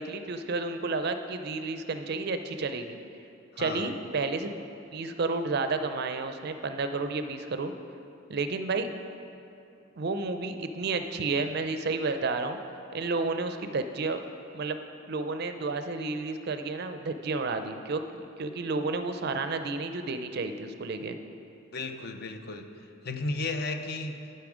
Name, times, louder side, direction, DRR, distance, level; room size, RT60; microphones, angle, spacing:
voice 1, 0.0-3.0 3.6-4.5 4.9-7.7 8.3-8.9 10.0-12.6 12.9-14.2 14.5-14.8 15.1-21.2, right 3 dB, 50° right, 8 dB, 0.4 m, -31 dB
voice 2, 3.5-3.9 21.7-22.7 23.0-24.2, left 3 dB, 50° left, 6 dB, 0.5 m, -34 dB
10.5 x 5.6 x 4.9 m, 2.7 s
head